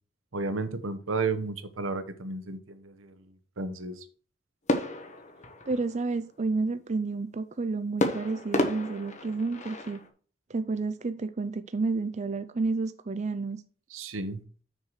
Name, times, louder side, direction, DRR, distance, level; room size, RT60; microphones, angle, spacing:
voice 1, 0.3-3.3 3.6-4.0 13.9-14.4, right 3 dB, 85° right, 1.0 m, -33 dB
sound 1, 4.7-6.2 8.0-10.1, left 1 dB, 40° left, 1.2 m, -31 dB
voice 2, 5.7-10.0 10.5-13.6, right 3 dB, 35° right, 0.5 m, -30 dB
6.6 x 4.7 x 6.5 m
head